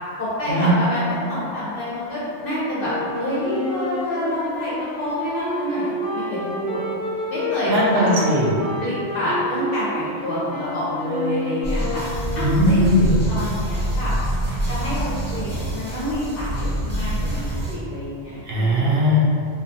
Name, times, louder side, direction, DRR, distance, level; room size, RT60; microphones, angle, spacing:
voice 1, 0.2-1.0 1.3-2.9 3.2-5.8 6.1-6.8 7.3-8.1 8.8-12.0 12.3-14.1 14.7-18.9, left 1 dB, 60° left, -9 dB, 0.7 m, -27 dB
sound 1, 2.8-12.8, left 1 dB, 85° left, 0.9 m, -29 dB
voice 2, 7.7-8.6 12.4-13.1 18.5-19.2, equal, 65° right, -6 dB, 0.7 m, -19 dB
sound 2, 11.6-17.7, right 1 dB, 10° right, 0.6 m, -26 dB
2.7 x 2.3 x 2.6 m, 2.5 s
omnidirectional pair, 1.2 m